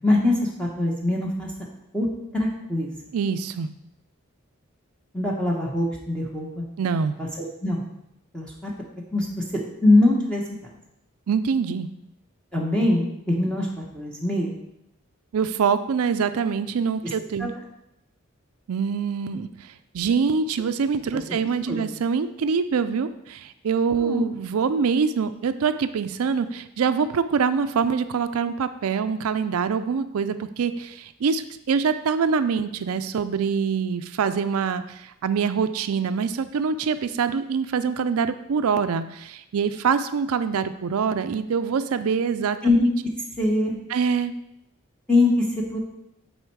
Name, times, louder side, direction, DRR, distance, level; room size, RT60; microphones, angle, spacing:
voice 1, 0.0-1.5 1.9-2.1 2.3-3.0 5.1-6.6 7.2-7.8 8.3-8.7 9.1-9.4 9.8-10.4 12.5-13.7 13.9-14.5 17.4-17.5 21.1-21.2 21.7-21.8 24.0-24.2 42.6-42.9 43.4-43.7 45.1-45.8, left 2 dB, 5° left, -3 dB, 0.9 m, -22 dB
voice 2, 3.1-3.7 6.8-7.2 11.3-11.9 15.3-17.5 18.7-42.6 43.9-44.4, right 6 dB, 90° right, 10 dB, 0.4 m, -24 dB
8.9 x 4.3 x 4.6 m, 0.83 s
head